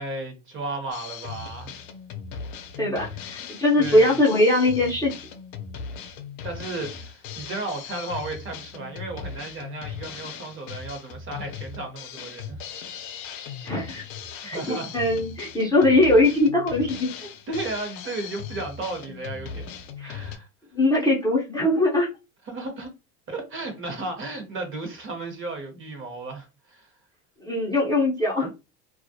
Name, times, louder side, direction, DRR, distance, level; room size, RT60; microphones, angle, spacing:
voice 1, 0.0-1.7 3.8-4.2 6.4-12.6 14.5-14.9 17.2-19.7 20.0-20.5 22.5-22.9 23.3-26.9, right 2 dB, 25° right, 0.8 m, -34 dB
Drum kit, 0.9-20.4, left 7 dB, 60° left, 0.6 m, -38 dB
voice 2, 2.8-5.1 13.6-14.0 14.4-17.1 20.0-20.1 20.7-22.1 27.4-28.5, left 1 dB, 10° left, 0.5 m, -21 dB
2.3 x 2.0 x 2.6 m
supercardioid pair, 110°, 46 cm